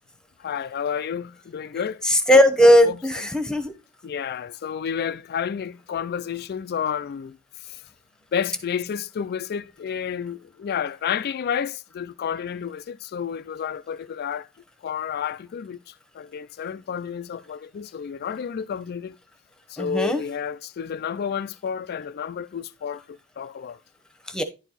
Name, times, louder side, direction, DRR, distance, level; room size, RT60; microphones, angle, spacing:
voice 1, 0.4-2.0 2.8-3.0 4.0-7.8 8.3-14.5 14.8-19.2 19.7-23.8, left 7 dB, 45° left, 0.3 m, -30 dB
voice 2, 2.0-3.7 19.8-20.2 24.3-24.4, equal, 5° left, 1.0 m, -17 dB
11.0 x 4.5 x 4.0 m
head